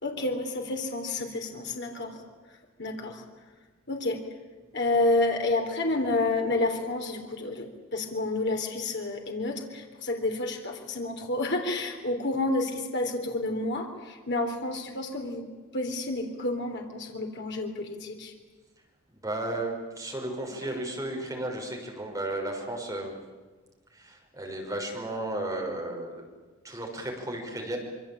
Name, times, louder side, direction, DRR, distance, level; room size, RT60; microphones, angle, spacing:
voice 1, 0.0-2.2 2.8-3.2 3.9-4.2 4.7-15.5 15.7-18.3, left 2 dB, 55° left, 3 dB, 3.7 m, -29 dB
voice 2, 19.2-23.2 23.9-26.2 26.6-27.8, right 1 dB, 15° right, 0 dB, 6.1 m, -34 dB
26.0 x 23.5 x 8.9 m, 1.3 s
head